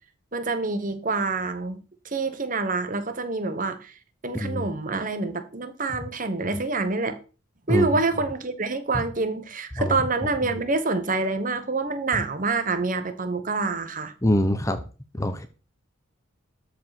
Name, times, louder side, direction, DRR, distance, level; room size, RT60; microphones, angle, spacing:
voice 1, 0.3-3.9 4.2-7.2 7.7-14.1, right 3 dB, 40° right, 1.3 m, -27 dB
voice 2, 14.2-14.8 15.1-15.5, left 1 dB, 15° left, 0.8 m, -24 dB
13.0 x 5.0 x 6.0 m
head